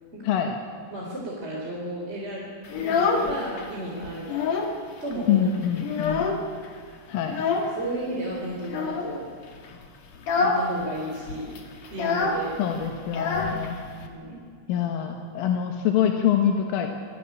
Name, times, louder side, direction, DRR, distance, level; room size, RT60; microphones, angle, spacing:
voice 1, 0.2-0.6 5.3-6.3 7.1-7.5 12.6-13.8 14.7-16.9, left 9 dB, 85° left, 4 dB, 4.2 m, -25 dB
voice 2, 0.9-2.4 2.7-4.3 5.0-5.5 6.0-6.3 7.7-9.3 10.3-11.6 11.9-12.5 14.0-14.5, right 1 dB, 15° right, -3 dB, 3.4 m, -33 dB
Child speech kid speaking, 2.6-3.7 4.0-4.8 5.1-5.2 5.5-6.6 7.3-7.8 8.6-9.1 9.6-9.8 10.1-10.7 10.9-11.0 11.3-14.1, left 4 dB, 50° left, 3.0 m, -26 dB
28.0 x 20.0 x 8.8 m, 2.2 s
omnidirectional pair, 5.6 m